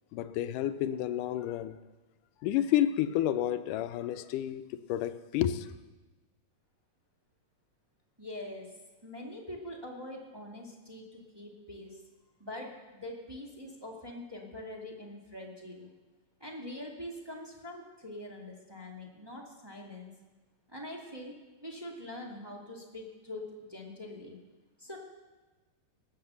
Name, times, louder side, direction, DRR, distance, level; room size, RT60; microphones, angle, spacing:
voice 1, 0.1-1.8 2.4-5.8, left 11 dB, 85° left, 11 dB, 2.3 m, -30 dB
voice 2, 8.2-8.7 9.0-12.0 12.4-15.9 16.4-20.1 20.7-21.3 21.6-24.4 24.8-25.0, left 1 dB, 10° right, -2 dB, 1.6 m, -44 dB
19.0 x 8.6 x 6.9 m, 1.2 s
omnidirectional pair, 3.6 m